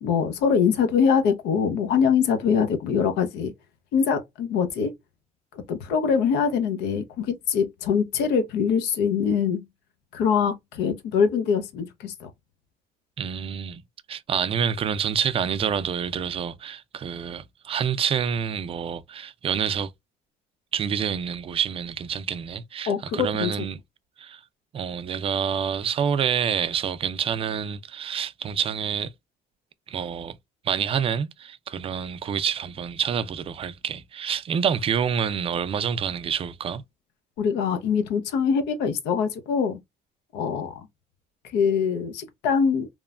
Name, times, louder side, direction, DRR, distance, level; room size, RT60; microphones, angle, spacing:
voice 1, 0.0-3.5 3.9-4.9 5.7-9.7 10.1-12.3 22.9-23.5 37.4-39.8 40.3-40.9 41.5-42.9, left 6 dB, 90° left, 0.7 m, -23 dB
voice 2, 13.2-13.8 14.1-19.9 20.7-23.8 24.2-24.4 24.7-29.1 29.9-30.4 30.6-36.8, right 7 dB, 35° right, 0.4 m, -27 dB
3.0 x 2.1 x 2.3 m
cardioid pair, 110°, 17 cm